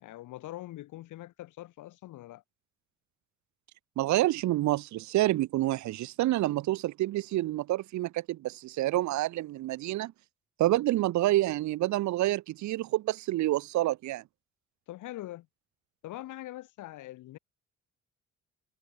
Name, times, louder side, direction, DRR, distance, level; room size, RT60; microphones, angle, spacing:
voice 1, 0.0-2.4 14.9-15.5 16.0-17.4, left 15 dB, 80° left, 1.1 m, -43 dB
voice 2, 4.0-10.1 10.6-14.2, right 16 dB, 70° right, 0.6 m, -28 dB
cardioid pair, 90°, 30 cm